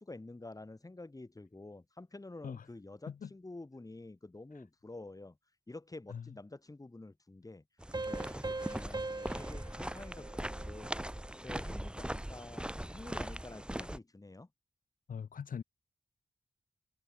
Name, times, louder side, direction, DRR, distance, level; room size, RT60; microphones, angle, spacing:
voice 1, 0.0-5.4 5.7-7.6 8.0-11.0 11.4-14.5, left 2 dB, 25° left, 6.8 m, -49 dB
sound 1, 7.8-14.0, right 1 dB, 5° right, 2.3 m, -40 dB
sound 2, 7.9-11.2, right 2 dB, 30° right, 6.3 m, -41 dB
voice 2, 15.1-15.6, left 7 dB, 80° left, 1.9 m, -41 dB
cardioid pair, 80°, 14 cm